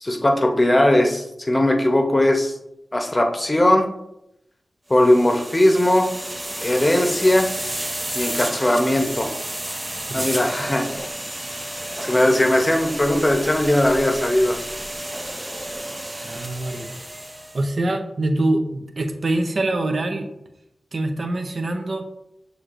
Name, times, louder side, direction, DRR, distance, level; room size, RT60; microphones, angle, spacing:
voice 1, 0.0-2.5 2.9-3.9 4.9-6.1 6.6-7.5 8.1-9.3 10.1-10.9 12.0-14.6, left 1 dB, 25° left, 3 dB, 0.8 m, -19 dB
sound 1, 4.9-17.7, right 1 dB, 15° right, 0.4 m, -31 dB
voice 2, 16.2-16.9 17.5-20.3 20.9-22.0, right 2 dB, 60° right, 4 dB, 0.6 m, -24 dB
6.4 x 3.1 x 2.5 m, 0.82 s
cardioid pair, 60°, 0 cm